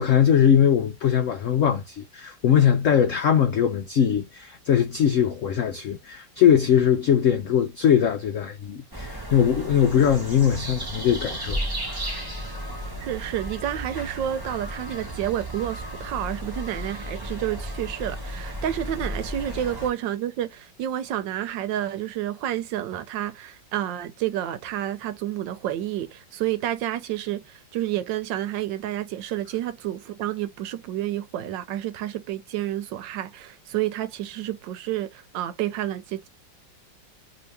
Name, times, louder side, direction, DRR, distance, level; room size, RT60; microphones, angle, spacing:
voice 1, 0.0-11.6 11.9-12.0, left 8 dB, 90° left, 0.6 m, -21 dB
sound 1, 8.9-19.9, right 1 dB, 15° right, 0.7 m, -34 dB
voice 2, 13.0-36.3, right 12 dB, 80° right, 1.3 m, -30 dB
3.1 x 2.9 x 3.2 m
omnidirectional pair, 2.0 m